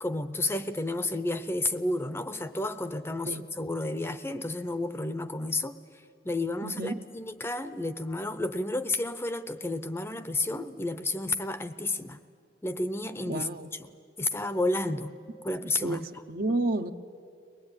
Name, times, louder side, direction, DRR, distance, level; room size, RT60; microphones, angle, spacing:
voice 1, 0.0-5.8 6.2-12.2 12.6-13.9 14.2-15.1 15.4-16.1, left 2 dB, 15° left, 0.6 m, -31 dB
voice 2, 6.6-6.9 13.3-13.7 15.8-16.0 16.3-16.9, right 2 dB, 55° right, 0.9 m, -30 dB
23.5 x 19.5 x 9.7 m
head